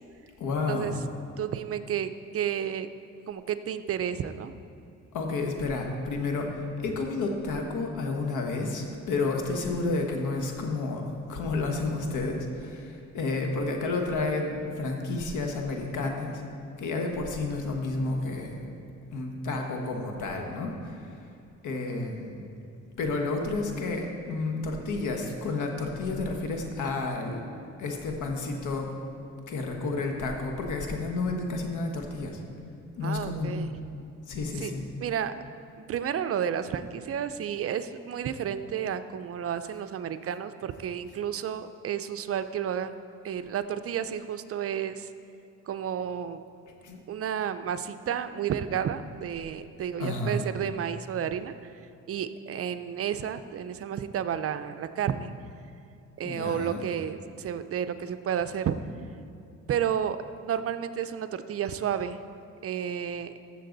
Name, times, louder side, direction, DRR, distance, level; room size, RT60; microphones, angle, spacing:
voice 1, 0.4-0.9 5.1-11.0 11.3-16.4 16.8-18.6 19.1-21.2 21.6-22.5 23.0-27.4 27.8-28.9 29.5-32.4 33.0-33.5 34.3-34.9 46.8-47.0 50.0-50.5 56.2-56.8, left 3 dB, 80° left, 2 dB, 1.4 m, -31 dB
voice 2, 1.4-2.9 3.3-4.5 33.0-33.7 34.6-34.7 35.0-35.3 35.8-42.9 43.2-45.1 45.7-46.4 47.1-51.7 52.1-55.3 56.2-58.7 59.7-60.2 60.4-62.2 62.6-63.3, right 9 dB, 50° right, 11 dB, 0.5 m, -31 dB
15.0 x 6.7 x 3.9 m, 2.5 s
cardioid pair, 90°, 30 cm